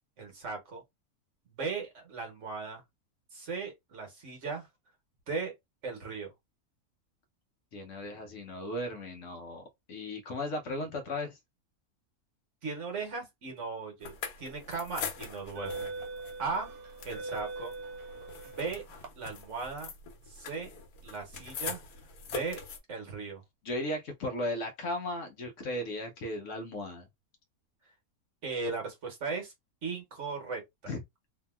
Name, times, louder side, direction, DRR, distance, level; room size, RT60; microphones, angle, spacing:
voice 1, 0.2-0.8 1.6-2.8 3.3-4.7 5.3-5.5 5.8-6.3 12.6-15.9 16.4-16.7 17.0-17.7 18.4-18.8 19.2-19.9 20.3-20.7 21.0-21.8 22.3-22.6 22.9-23.4 28.4-29.5 29.8-30.9, right 4 dB, 55° right, 1.2 m, -37 dB
voice 2, 7.7-11.4 23.6-27.1 30.9-31.0, left 1 dB, 65° left, 1.0 m, -36 dB
sound 1, 14.0-22.8, left 5 dB, 90° left, 1.2 m, -43 dB
sound 2, 14.3-14.5 15.3-19.1, right 3 dB, 75° right, 1.2 m, -41 dB
2.8 x 2.7 x 2.2 m
omnidirectional pair, 1.6 m